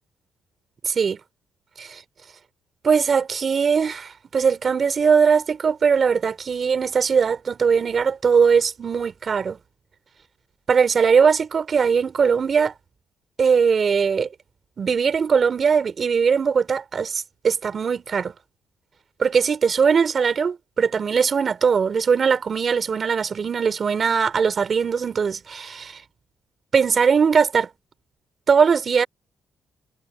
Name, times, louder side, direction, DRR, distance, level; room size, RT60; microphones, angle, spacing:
voice 1, 0.8-1.2 1.8-2.0 2.8-9.6 10.7-12.7 13.4-14.3 14.8-18.3 19.2-26.0 26.7-27.7 28.5-29.1, right 6 dB, 45° right, 4.4 m, -20 dB
cardioid pair, 90°, 0 cm